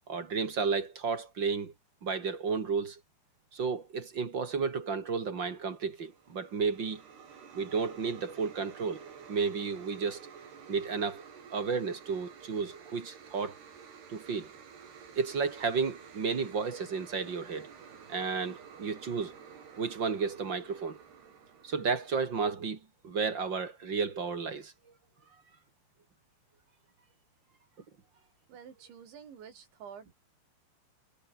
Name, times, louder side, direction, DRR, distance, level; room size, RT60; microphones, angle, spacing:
voice 1, 0.1-1.7 2.0-3.0 3.5-7.0 7.5-10.3 10.7-11.2 11.5-13.5 14.1-14.5 15.2-17.7 18.1-19.3 19.8-21.0 21.6-24.7, right 5 dB, 35° right, 1.9 m, -32 dB
sound 1, 5.9-22.3, right 6 dB, 65° right, 6.2 m, -51 dB
voice 2, 28.5-30.1, right 7 dB, 80° right, 6.4 m, -49 dB
omnidirectional pair, 5.1 m